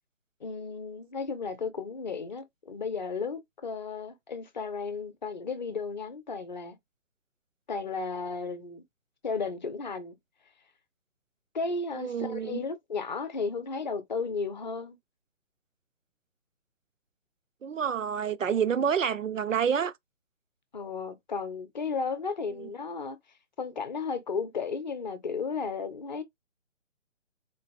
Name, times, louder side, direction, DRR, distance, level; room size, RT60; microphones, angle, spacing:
voice 1, 0.4-6.8 7.7-8.8 9.2-10.2 11.5-15.0 20.7-23.2 23.6-26.2, left 4 dB, 35° left, 0.6 m, -34 dB
voice 2, 11.9-12.6 17.6-19.9 22.6-22.7, right 7 dB, 85° right, 0.5 m, -28 dB
3.9 x 2.8 x 2.5 m
figure-of-eight pair, 145°, 38 cm